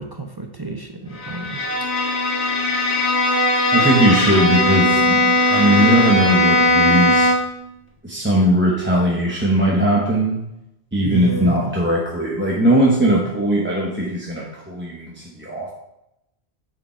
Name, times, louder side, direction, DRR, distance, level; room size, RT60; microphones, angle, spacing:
voice 1, 0.0-1.6 2.1-2.2 3.3-3.4 11.0-11.7, right 2 dB, 25° right, 3 dB, 0.6 m, -31 dB
Bowed string instrument, 1.2-7.6, left 1 dB, 85° left, 1.7 m, -18 dB
voice 2, 3.7-7.3 8.0-10.4 10.9-15.7, equal, 10° right, -5 dB, 1.1 m, -19 dB
7.4 x 4.9 x 4.5 m, 0.85 s
omnidirectional pair, 1.1 m